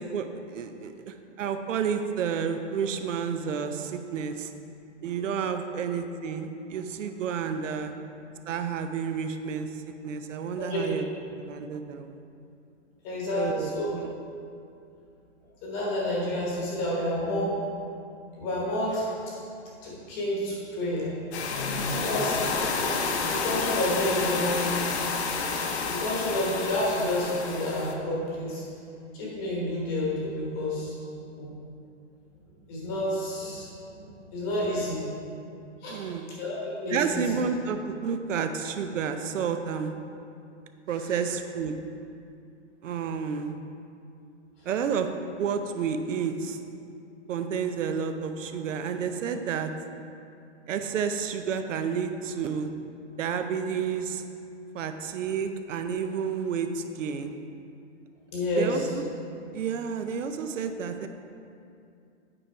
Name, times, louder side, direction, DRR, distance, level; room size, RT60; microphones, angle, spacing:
voice 1, 0.1-4.5 5.0-7.9 8.5-9.7 10.0-11.0 11.4-12.2 13.3-14.1 22.5-22.6 35.9-36.3 36.9-39.9 40.9-41.8 42.8-43.6 44.6-45.1 45.4-46.6 47.3-49.7 50.7-52.7 53.2-54.2 54.7-57.3 58.6-59.0 59.5-61.1, right 6 dB, 80° right, 8 dB, 0.7 m, -30 dB
voice 2, 13.0-13.9 15.6-17.6 18.4-19.1 19.8-21.1 21.9-22.9 23.2-24.7 25.9-28.6 29.1-30.9 31.4-31.5 32.7-33.7 33.9-35.0 35.8-36.1 36.4-37.4 58.3-58.9, left 1 dB, 15° left, -5 dB, 1.0 m, -29 dB
sound 1, 21.3-27.9, left 4 dB, 60° left, 0.9 m, -29 dB
8.6 x 4.9 x 4.4 m, 2.5 s
hypercardioid pair, 180°, 37 cm